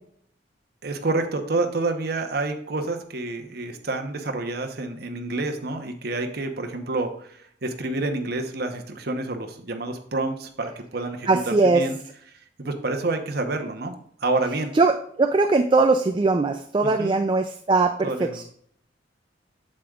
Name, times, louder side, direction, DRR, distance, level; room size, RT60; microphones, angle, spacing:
voice 1, 0.8-12.0 12.6-13.9 14.2-14.7 16.8-17.2 18.0-18.4, right 2 dB, 55° right, 5 dB, 1.0 m, -28 dB
voice 2, 11.3-11.8 14.7-18.4, right 3 dB, 25° right, 7 dB, 0.3 m, -20 dB
8.3 x 7.7 x 2.4 m, 0.64 s
head